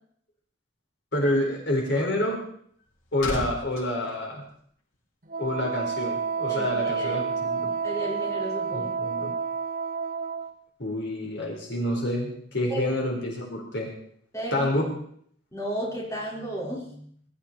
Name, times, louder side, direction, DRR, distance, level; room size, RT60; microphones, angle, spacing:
voice 1, 1.1-2.4 3.1-4.4 5.4-7.7 8.7-9.3 10.8-13.9 14.5-14.9, left 1 dB, 60° left, 0 dB, 4.2 m, -28 dB
sound 1, 2.5-5.1 5.4-5.7, left 1 dB, 90° left, 5.6 m, -38 dB
Wind instrument woodwind instrument, 5.3-10.5, right 5 dB, 45° right, 1.4 m, -29 dB
voice 2, 6.5-7.2 7.8-8.9 12.7-13.0 14.3-14.7 15.5-17.1, right 1 dB, 15° left, -4 dB, 5.0 m, -33 dB
22.0 x 13.5 x 4.4 m, 0.64 s
head